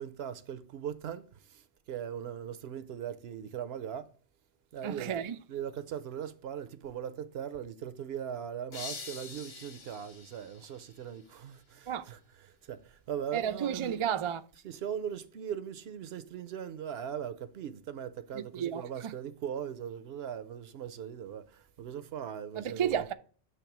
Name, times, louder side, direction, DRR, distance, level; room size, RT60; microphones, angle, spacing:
voice 1, 0.0-1.6 1.9-4.1 4.7-5.2 5.5-14.0 14.6-23.1, right 9 dB, 80° right, 0.9 m, -39 dB
voice 2, 4.8-5.4 11.9-12.0 13.3-14.4 18.3-19.1 22.6-23.1, right 9 dB, 50° right, 0.3 m, -32 dB
sound 1, 8.7-11.5, left 4 dB, 50° left, 1.0 m, -46 dB
8.4 x 3.3 x 5.9 m
omnidirectional pair, 1.0 m